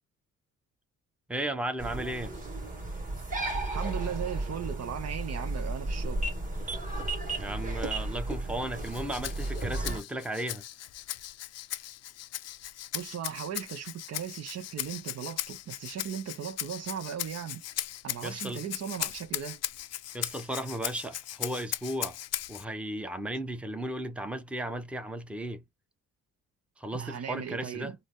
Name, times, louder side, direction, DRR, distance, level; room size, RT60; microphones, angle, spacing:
voice 1, 1.3-2.4 7.4-10.6 18.2-18.6 20.1-22.2 22.5-25.6 26.8-27.9, right 1 dB, 5° right, 0.8 m, -35 dB
sound 1, 1.8-10.0, right 2 dB, 25° right, 2.0 m, -34 dB
voice 2, 3.7-6.3 12.9-17.6 18.0-19.6 26.9-27.9, right 8 dB, 55° right, 0.8 m, -37 dB
Rattle (instrument), 8.8-22.6, left 13 dB, 55° left, 0.5 m, -38 dB
3.9 x 2.1 x 3.5 m
cardioid pair, 90°, 30 cm